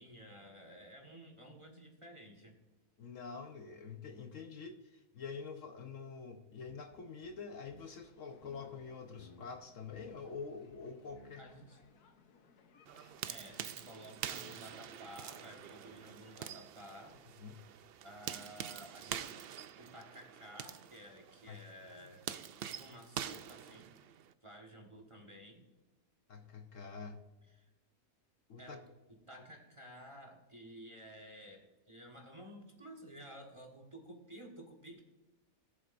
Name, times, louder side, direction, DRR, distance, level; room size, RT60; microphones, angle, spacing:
voice 1, 0.0-2.6 11.4-11.8 13.3-17.2 18.0-19.5 19.8-22.3 22.6-23.9 24.4-25.7 27.5-27.7 28.6-28.8 29.3-35.0, equal, 20° right, 2 dB, 1.4 m, -53 dB
voice 2, 3.0-11.4 17.4-17.6 21.5-21.6 26.3-27.3 28.5-28.8, left 5 dB, 60° left, 5 dB, 1.1 m, -46 dB
sound 1, 6.7-8.1 8.4-9.6 9.9-10.4 10.7-11.6 11.8-11.9, left 1 dB, 35° left, 1.3 m, -60 dB
sound 2, 7.7-16.4, left 5 dB, 85° left, 1.5 m, -66 dB
sound 3, 12.9-24.3, right 9 dB, 80° right, 0.5 m, -46 dB
18.5 x 7.5 x 2.6 m, 1.1 s
omnidirectional pair, 1.6 m